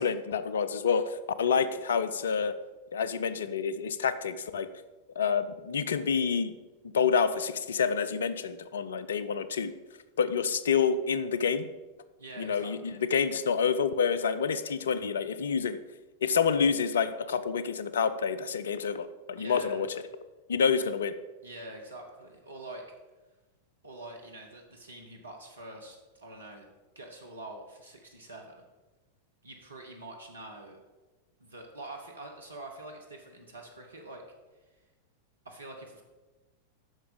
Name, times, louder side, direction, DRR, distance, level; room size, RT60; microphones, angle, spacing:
voice 1, 0.0-2.6 2.9-4.7 5.2-6.5 6.9-9.7 10.2-11.7 12.4-15.8 16.2-19.9 20.5-21.1, left 6 dB, 65° left, 13 dB, 0.5 m, -28 dB
voice 2, 12.2-13.0 19.4-19.9 20.7-20.9 21.4-22.8 23.8-26.6 26.9-28.6 29.4-30.8 31.4-34.2 35.4-36.0, right 2 dB, 75° right, 2 dB, 1.2 m, -45 dB
9.7 x 6.1 x 5.1 m, 1.2 s
figure-of-eight pair, 90°, 0 cm